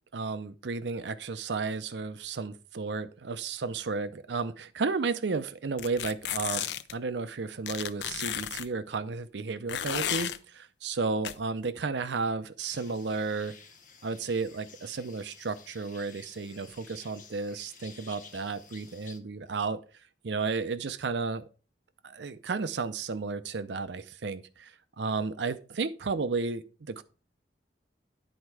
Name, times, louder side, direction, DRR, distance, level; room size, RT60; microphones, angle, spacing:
voice 1, 0.1-13.6 14.0-19.8 20.2-21.4 22.0-27.0, right 4 dB, 75° right, 0.6 m, -33 dB
sound 1, 5.8-6.9 7.7-8.7 9.7-10.4 11.2-11.3, left 10 dB, 70° left, 0.5 m, -33 dB
sound 2, 12.6-19.2, left 6 dB, 45° left, 0.9 m, -53 dB
10.0 x 4.4 x 4.7 m
head